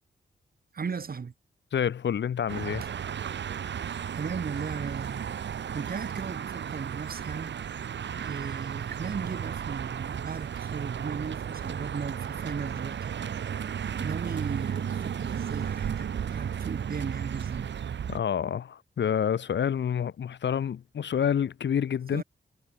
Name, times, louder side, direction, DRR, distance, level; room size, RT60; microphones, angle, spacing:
voice 1, 0.7-1.3 4.1-5.2 5.7-7.6 8.1-13.1 14.0-17.7 22.1-22.2, right 5 dB, 55° right, 7.6 m, -36 dB
voice 2, 1.7-2.8 18.1-22.2, left 8 dB, 90° left, 2.7 m, -28 dB
sound 1, 2.5-18.2, right 8 dB, 85° right, 2.6 m, -34 dB
wide cardioid pair, 110°, 18 cm